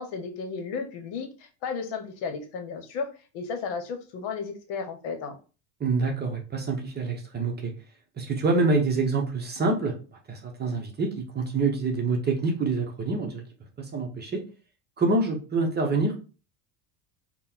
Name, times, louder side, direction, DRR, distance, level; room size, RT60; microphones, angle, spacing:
voice 1, 0.0-5.4, left 5 dB, 70° left, 6 dB, 1.0 m, -34 dB
voice 2, 5.8-7.7 8.2-10.0 10.3-13.4 13.8-14.4 15.0-16.1, right 3 dB, 20° right, 2 dB, 0.7 m, -26 dB
3.7 x 2.2 x 4.3 m, 0.35 s
cardioid pair, 120°, 46 cm